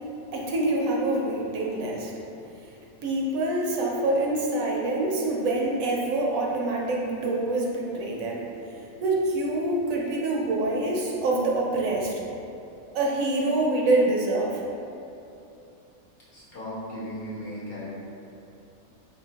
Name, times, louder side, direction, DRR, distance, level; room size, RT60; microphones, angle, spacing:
voice 1, 0.3-2.1 3.0-12.2 12.9-14.6, right 2 dB, 75° right, -2 dB, 1.0 m, -26 dB
voice 2, 16.3-17.9, equal, 50° left, -8 dB, 0.8 m, -36 dB
3.9 x 2.8 x 2.7 m, 2.8 s
omnidirectional pair, 1.5 m